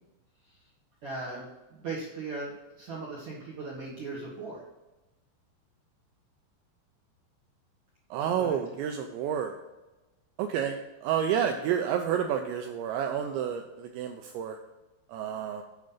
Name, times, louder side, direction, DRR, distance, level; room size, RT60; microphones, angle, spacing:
voice 1, 1.0-4.6 8.2-8.6, right 3 dB, 65° right, -6 dB, 1.8 m, -38 dB
voice 2, 8.1-9.5 10.4-14.6 15.1-15.6, right 8 dB, 85° right, 4 dB, 2.6 m, -30 dB
9.2 x 5.3 x 5.6 m, 1.1 s
omnidirectional pair, 5.8 m